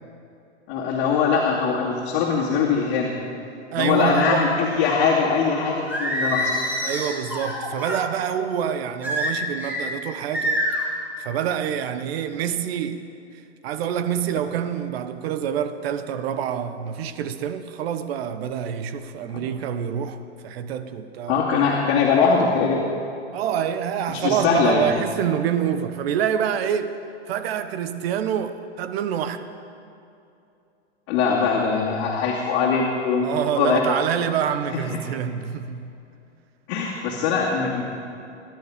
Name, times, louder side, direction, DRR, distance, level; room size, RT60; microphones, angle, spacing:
voice 1, 0.7-3.1 3.8-6.5 19.3-19.4 21.3-22.8 24.1-24.9 31.1-33.3 33.6-33.8 34.7-35.0 36.7-37.8, left 5 dB, 45° left, 2.6 m, -21 dB
voice 2, 3.7-4.5 6.8-10.6 11.2-13.1 13.6-20.2 20.4-21.4 23.3-26.9 27.3-29.4 33.2-35.9, right 9 dB, 60° right, 1.1 m, -26 dB
Singing, 5.9-8.0 9.0-9.9 10.3-10.9, equal, 5° right, 3.0 m, -26 dB
20.0 x 11.0 x 5.1 m
hypercardioid pair, 120°, 35 cm